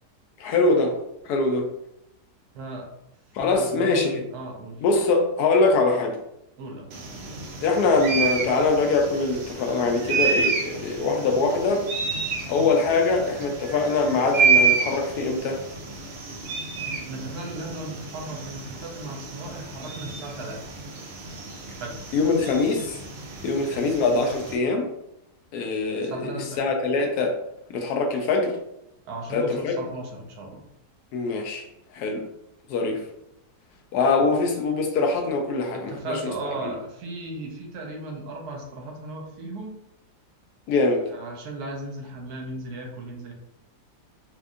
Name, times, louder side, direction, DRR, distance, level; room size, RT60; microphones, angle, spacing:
voice 1, 0.4-0.9 1.2-1.7 3.3-4.3 4.8-6.2 7.6-11.8 12.5-15.6 22.1-23.0 23.4-24.9 25.5-27.4 27.7-28.6 29.3-29.8 31.1-31.7 31.9-32.2 32.7-33.0 33.9-36.2 36.6-36.7 40.7-41.0, left 3 dB, 75° left, 3 dB, 1.0 m, -23 dB
voice 2, 2.5-2.9 3.4-4.8 6.6-6.9 17.1-20.7 21.7-22.1 26.0-26.6 29.0-30.7 35.6-39.8 41.1-43.3, right 2 dB, 70° right, 1 dB, 1.1 m, -36 dB
sound 1, 6.9-24.6, right 5 dB, 85° right, 0.5 m, -29 dB
4.3 x 2.5 x 2.4 m, 0.82 s
omnidirectional pair, 1.8 m